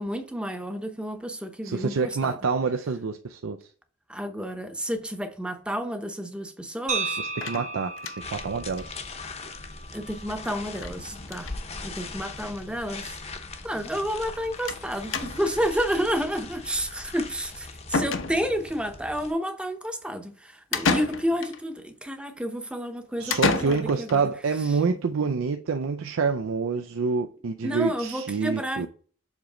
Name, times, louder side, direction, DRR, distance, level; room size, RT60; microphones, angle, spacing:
voice 1, 0.0-2.4 4.1-7.2 9.9-11.5 11.8-13.2 13.6-24.3 27.6-28.9, equal, 5° right, 0.7 m, -30 dB
voice 2, 1.6-3.7 7.2-9.0 23.2-28.9, right 5 dB, 80° right, 0.5 m, -27 dB
sound 1, 6.9-11.0, right 4 dB, 35° right, 0.8 m, -35 dB
sound 2, 7.4-8.4 8.8-8.9 9.2-9.3 9.5-9.6 10.7-11.0 11.2-11.6 12.5-12.6 12.8-12.9 14.7-14.9 15.1-15.6 17.4-17.5 17.9-18.7 20.7-21.6 23.3-24.2, left 4 dB, 65° left, 0.8 m, -29 dB
sound 3, 8.2-19.3, left 3 dB, 30° left, 0.7 m, -40 dB
7.3 x 3.1 x 4.9 m
head